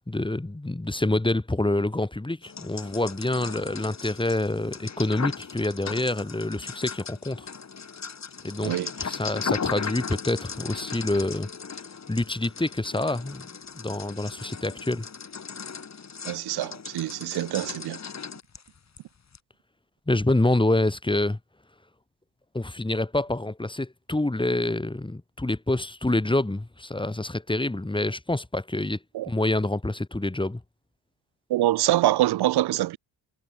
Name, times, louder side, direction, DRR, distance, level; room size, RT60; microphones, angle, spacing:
voice 1, 0.1-7.5 8.4-8.7 9.0-11.5 12.1-13.5 13.8-15.1 20.1-21.4 22.5-29.0 29.3-30.6, left 2 dB, 15° left, 3.6 m, -27 dB
sound 1, 2.4-19.0 19.3-19.4, left 6 dB, 45° left, 4.6 m, -37 dB
voice 2, 16.2-18.0 29.1-29.3 31.5-33.0, right 15 dB, 80° right, 1.1 m, -25 dB
cardioid pair, 65°, 38 cm